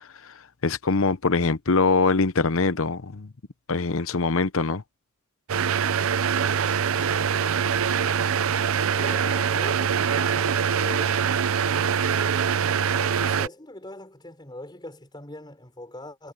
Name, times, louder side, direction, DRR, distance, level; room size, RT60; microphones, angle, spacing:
voice 1, 0.6-3.3 3.7-4.8, left 4 dB, 65° left, 0.9 m, -23 dB
sound 1, 5.5-13.5, right 7 dB, 65° right, 0.6 m, -23 dB
voice 2, 8.9-11.3 13.0-16.3, left 1 dB, 20° left, 4.8 m, -42 dB
head